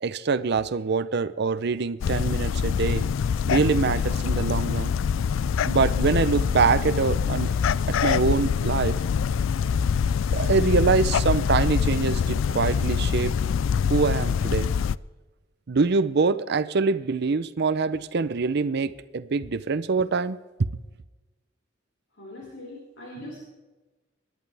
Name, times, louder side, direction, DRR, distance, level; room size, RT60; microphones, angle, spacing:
voice 1, 0.0-3.0 3.5-5.0 5.7-7.5 7.9-9.0 10.3-13.3 13.9-14.7 15.7-20.4, right 4 dB, 60° right, 0.6 m, -24 dB
sound 1, 2.0-15.0, left 6 dB, 90° left, 0.4 m, -24 dB
voice 2, 22.2-23.4, left 1 dB, 70° left, 4.8 m, -41 dB
22.5 x 11.0 x 3.4 m
head